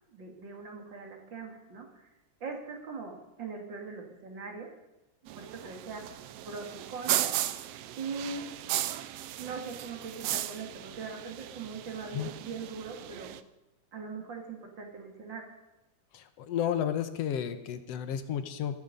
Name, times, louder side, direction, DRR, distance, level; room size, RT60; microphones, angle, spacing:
voice 1, 0.1-2.1 2.4-4.7 5.4-6.1 6.4-7.3 8.0-8.5 9.4-13.3 13.9-15.4, right 4 dB, 40° right, 2 dB, 2.7 m, -41 dB
sound 1, 5.3-13.4, right 13 dB, 80° right, 1.4 m, -36 dB
voice 2, 16.1-18.8, left 9 dB, 65° left, 10 dB, 1.8 m, -32 dB
14.5 x 14.0 x 5.4 m, 0.98 s
omnidirectional pair, 3.5 m